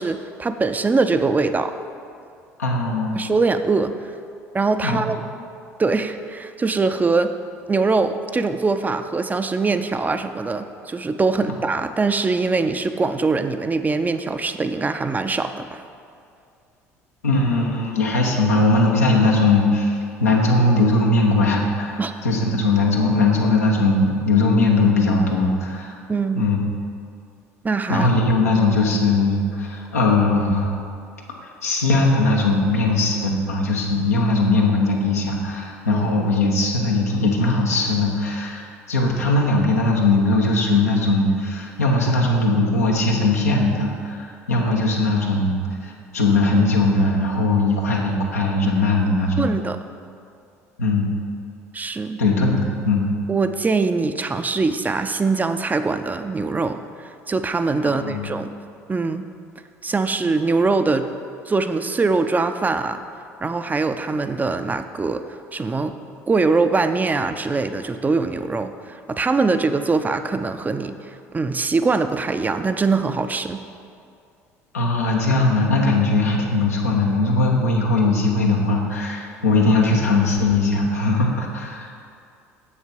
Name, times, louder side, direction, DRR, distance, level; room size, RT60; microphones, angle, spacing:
voice 1, 0.0-1.8 3.1-3.9 4.5-5.2 5.8-7.3 7.7-15.8 22.0-22.1 26.1-26.4 27.6-28.1 35.9-36.3 49.4-49.8 51.7-52.2 53.3-56.8 57.3-58.5 58.9-59.3 59.8-61.1 61.5-63.0 63.4-65.2 65.5-65.9 66.3-71.0 71.3-73.7, right 4 dB, 20° right, 9 dB, 0.5 m, -22 dB
voice 2, 2.6-3.3 4.8-5.0 17.2-26.0 26.3-26.6 27.9-30.8 31.6-49.5 50.8-51.1 52.2-53.1 57.8-58.3 74.7-81.9, left 2 dB, 90° left, -1 dB, 1.0 m, -19 dB
7.2 x 6.5 x 5.3 m, 2.4 s
hypercardioid pair, 65°, 8 cm